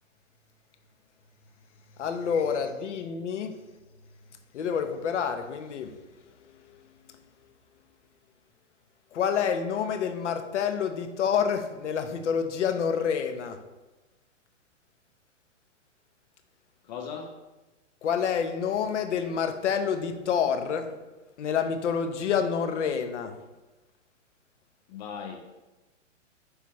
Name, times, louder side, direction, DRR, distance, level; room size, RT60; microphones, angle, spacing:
voice 1, 2.0-3.6 4.5-5.9 9.1-13.6 18.0-20.9 21.4-23.3, left 7 dB, 70° left, 7 dB, 0.9 m, -28 dB
voice 2, 16.8-17.4 24.9-25.6, left 6 dB, 35° left, 3 dB, 0.6 m, -38 dB
9.6 x 3.4 x 3.1 m, 1.1 s
hypercardioid pair, 125°, 37 cm